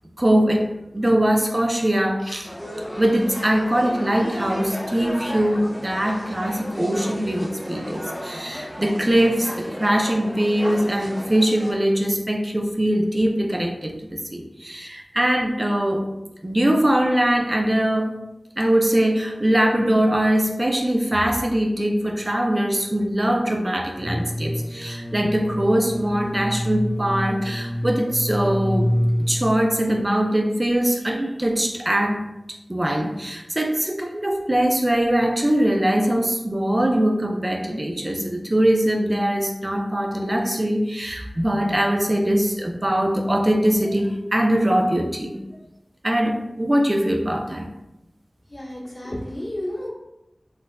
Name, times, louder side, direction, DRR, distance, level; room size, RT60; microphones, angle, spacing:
voice 1, 0.2-2.5 3.0-16.1 16.4-18.2 18.6-28.9 29.2-32.2 32.5-45.4 46.0-47.7, right 1 dB, 30° right, 2 dB, 0.5 m, -22 dB
sound 1, 2.4-11.7, equal, ahead, 1.1 m, -34 dB
sound 2, 24.0-30.0, equal, 65° right, 1.3 m, -27 dB
voice 2, 48.5-49.9, left 1 dB, 40° left, -8 dB, 1.5 m, -31 dB
4.0 x 2.6 x 2.3 m, 0.93 s
wide cardioid pair, 50°, 0 cm